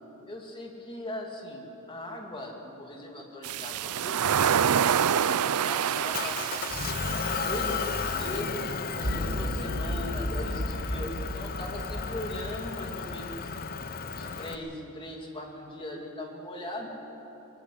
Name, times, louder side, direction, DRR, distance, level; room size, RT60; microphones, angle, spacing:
voice 1, 0.3-4.3 5.1-6.4 7.3-8.6 8.9-13.2 14.1-17.0, left 1 dB, 25° left, 0 dB, 2.9 m, -39 dB
sound 1, 3.4-8.4, right 8 dB, 85° right, 0.5 m, -27 dB
Motor vehicle (road) / Engine, 6.1-14.5, left 5 dB, 40° left, 0.8 m, -34 dB
sound 2, 9.0-13.3, equal, 30° right, 4.4 m, -34 dB
22.0 x 18.5 x 8.0 m, 3.0 s
head